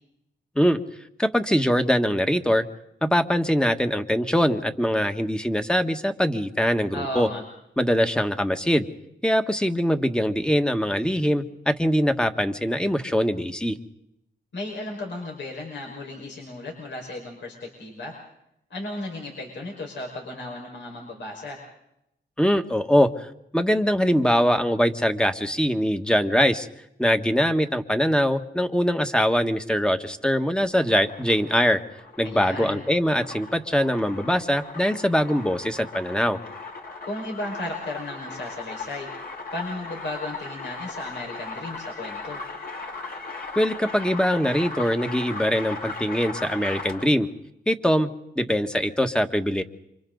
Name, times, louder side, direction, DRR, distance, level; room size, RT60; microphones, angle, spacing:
voice 1, 1.2-2.6 3.0-7.3 7.8-8.9 9.2-13.8 22.4-23.3 23.5-26.7 27.0-31.8 32.2-36.4 43.5-47.3 47.7-48.1 48.4-49.6, equal, 5° left, 7 dB, 1.7 m, -22 dB
voice 2, 6.9-7.4 14.5-18.2 18.7-21.6 32.2-32.8 37.0-39.1 39.5-42.4, left 1 dB, 75° left, 0 dB, 5.4 m, -35 dB
sound 1, 30.6-47.2, left 3 dB, 55° left, 5.4 m, -38 dB
28.5 x 25.5 x 4.0 m, 0.81 s
cardioid pair, 70°, 19 cm